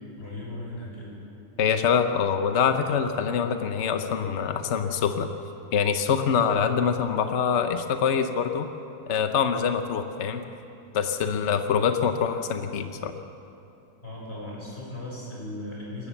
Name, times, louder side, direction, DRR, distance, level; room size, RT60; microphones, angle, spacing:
voice 1, 0.2-1.2 11.2-11.5 14.0-16.1, left 1 dB, 30° left, -5 dB, 7.4 m, -37 dB
voice 2, 1.6-5.3 5.7-8.7 9.1-10.4 10.9-13.1, left 7 dB, 65° left, 7 dB, 0.7 m, -25 dB
26.5 x 14.5 x 7.2 m, 2.8 s
omnidirectional pair, 2.3 m